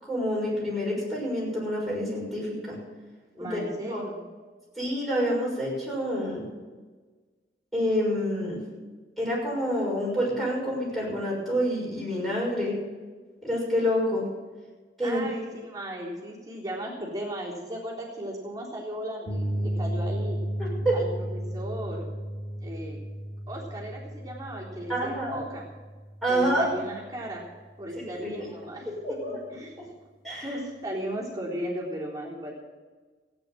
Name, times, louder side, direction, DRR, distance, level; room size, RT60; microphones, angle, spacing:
voice 1, 0.0-2.8 3.4-3.6 3.9-4.0 4.8-6.5 7.7-8.6 9.2-12.8 13.4-14.3 15.0-15.2 20.6-21.0 24.9-25.4 26.2-26.7 28.0-28.3 29.0-29.4 29.8-29.9 30.2-30.5, equal, ahead, -5 dB, 6.1 m, -28 dB
voice 2, 3.4-4.2 15.0-20.4 20.9-22.0 22.6-23.0 23.5-25.6 26.3-27.5 27.8-28.9 29.5-29.7 30.4-32.5, right 1 dB, 20° right, -5 dB, 3.7 m, -36 dB
sound 1, 19.3-27.0, equal, 65° left, 3.2 m, -34 dB
16.0 x 9.4 x 7.6 m, 1.4 s
head